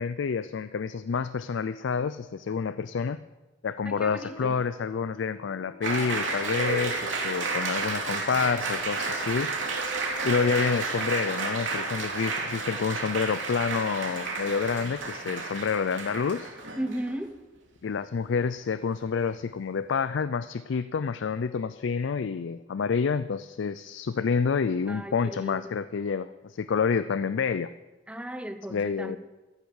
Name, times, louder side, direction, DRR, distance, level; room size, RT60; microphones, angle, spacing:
voice 1, 0.0-3.2 3.6-9.5 10.2-16.5 17.8-27.7 28.7-29.2, left 5 dB, 70° left, 14 dB, 0.4 m, -28 dB
voice 2, 3.8-4.6 16.8-17.4 24.9-25.8 28.1-29.2, right 1 dB, 5° right, 9 dB, 0.9 m, -36 dB
sound 1, 3.9-9.6 10.3-10.4 11.1-11.4 11.8-12.0 12.7-12.8, left 2 dB, 30° left, 3.4 m, -52 dB
Applause, 5.8-17.2, right 3 dB, 90° right, 2.8 m, -31 dB
14.0 x 10.5 x 6.5 m, 1.1 s
head